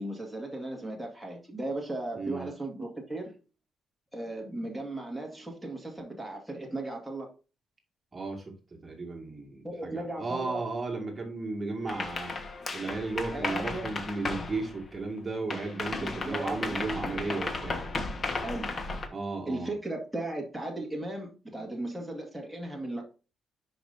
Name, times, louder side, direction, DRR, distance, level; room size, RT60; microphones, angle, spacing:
voice 1, 0.0-3.4 4.1-7.3 9.6-10.6 13.3-13.9 16.0-16.9 18.4-18.8 19.5-23.0, right 2 dB, 5° right, 1.9 m, -36 dB
voice 2, 2.1-2.5 8.1-12.3 12.7-17.9 19.1-19.7 21.5-21.6, right 3 dB, 30° right, 2.0 m, -35 dB
sound 1, 11.9-15.2 15.5-19.1, left 3 dB, 35° left, 1.3 m, -35 dB
10.0 x 5.0 x 2.7 m
cardioid pair, 90°, 0 cm